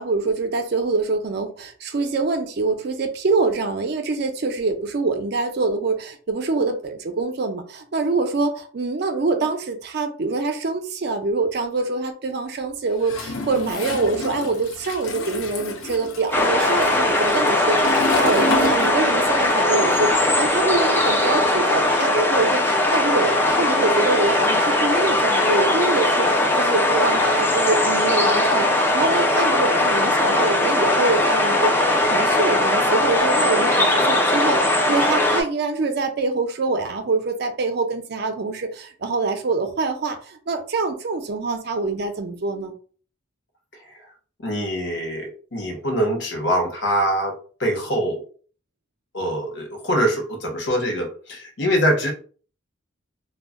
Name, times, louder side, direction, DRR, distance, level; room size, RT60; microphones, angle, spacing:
voice 1, 0.0-42.7, right 3 dB, 55° right, 0.4 m, -25 dB
Toilet flush, 13.0-19.5 19.7-21.3, left 3 dB, 90° left, 0.5 m, -30 dB
sound 1, 16.3-35.4, left 1 dB, 10° left, 0.3 m, -19 dB
voice 2, 44.4-48.2 49.1-52.1, equal, 60° left, 0.8 m, -24 dB
2.2 x 2.1 x 3.5 m
head